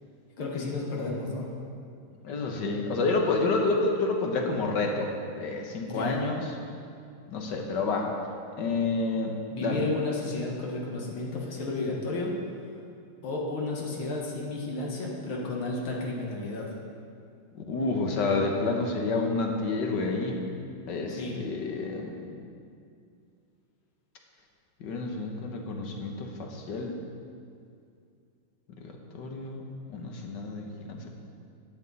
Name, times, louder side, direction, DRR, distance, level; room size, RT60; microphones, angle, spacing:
voice 1, 0.4-1.5 5.8-6.2 9.5-12.4 13.2-16.7 21.1-21.4, left 2 dB, 75° left, -2 dB, 2.3 m, -32 dB
voice 2, 2.2-5.1 5.4-6.5 7.3-8.1 8.6-9.8 17.7-20.4 20.9-22.3 24.8-27.0 28.8-29.6 29.9-31.1, left 3 dB, 60° left, 2 dB, 1.8 m, -29 dB
13.0 x 9.7 x 4.1 m, 2.4 s
omnidirectional pair, 2.3 m